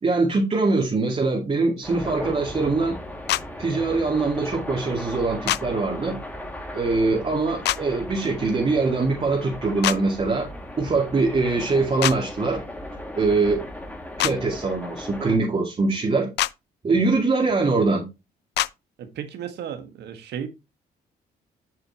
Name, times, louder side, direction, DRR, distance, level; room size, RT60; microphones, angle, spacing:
voice 1, 0.0-3.0 3.6-6.2 6.7-10.5 10.8-12.6 13.2-13.6 14.2-16.3 16.8-18.1, right 3 dB, 35° right, 2.4 m, -23 dB
sound 1, 1.8-15.4, left 1 dB, 10° left, 2.0 m, -37 dB
sound 2, 3.3-3.4 5.5-5.6 7.6-7.8 9.8-10.0 12.0-12.2 14.2-14.3 16.4-16.5 18.6-18.7, left 15 dB, 80° left, 0.4 m, -23 dB
voice 2, 19.0-20.5, right 8 dB, 80° right, 1.5 m, -34 dB
8.0 x 6.6 x 2.8 m
cardioid pair, 85°, 17 cm